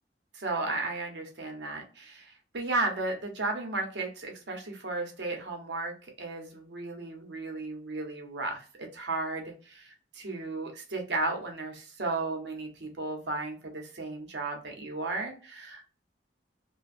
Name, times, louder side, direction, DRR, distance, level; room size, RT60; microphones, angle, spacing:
voice 1, 0.3-15.9, right 2 dB, 75° right, 3 dB, 0.8 m, -34 dB
2.5 x 2.2 x 2.4 m, 0.36 s
head